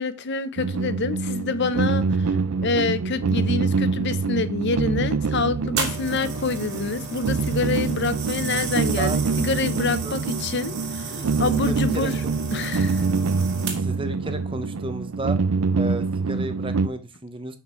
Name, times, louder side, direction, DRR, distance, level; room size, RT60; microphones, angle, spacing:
voice 1, 0.0-2.4 2.6-12.2 12.5-13.0, left 3 dB, 50° left, 0.8 m, -27 dB
sound 1, 0.6-16.9, right 4 dB, 80° right, 0.5 m, -25 dB
sound 2, 5.8-14.1 14.8-15.0, right 4 dB, 50° right, 2.2 m, -34 dB
voice 2, 10.7-12.6 13.8-15.4 15.8-17.6, right 2 dB, 25° right, 0.8 m, -33 dB
8.0 x 5.8 x 4.4 m
head